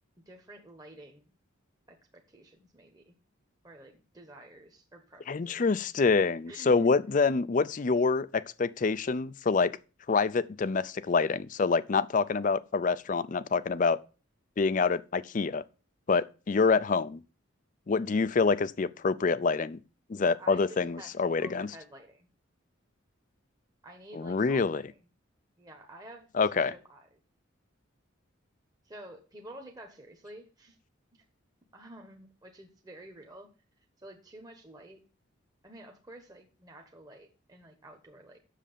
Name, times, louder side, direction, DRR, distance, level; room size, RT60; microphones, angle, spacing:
voice 1, 0.3-1.3 1.9-3.1 3.6-5.7 6.5-6.9 20.4-21.1 21.4-22.3 23.8-25.0 25.6-27.1 28.8-30.8 31.7-33.5 34.0-35.0 35.6-38.4, right 1 dB, 20° right, 1.1 m, -50 dB
voice 2, 5.3-9.7 10.1-14.0 14.6-15.6 16.1-17.2 17.9-19.8 20.1-21.7 24.1-24.8 26.3-26.7, left 4 dB, 40° left, 0.4 m, -26 dB
7.5 x 6.6 x 6.7 m
head